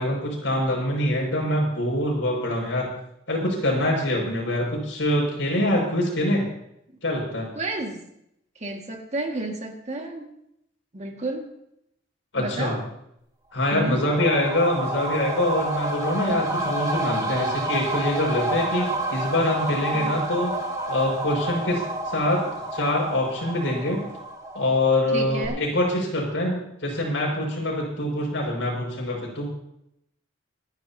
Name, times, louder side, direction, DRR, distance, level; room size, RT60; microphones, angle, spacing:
voice 1, 0.0-2.9 3.3-6.5 7.0-7.5 12.3-12.8 13.5-22.4 22.7-24.0 24.5-29.5, left 1 dB, 75° left, -2 dB, 6.0 m, -24 dB
voice 2, 7.6-8.0 8.6-10.2 10.9-11.4 12.4-12.8 13.7-14.0 19.9-20.2 25.1-25.6, right 2 dB, 35° right, 2 dB, 2.0 m, -31 dB
sound 1, 13.7-25.1 25.4-25.5, right 1 dB, 20° right, 2.2 m, -29 dB
27.5 x 10.5 x 2.9 m, 0.78 s
head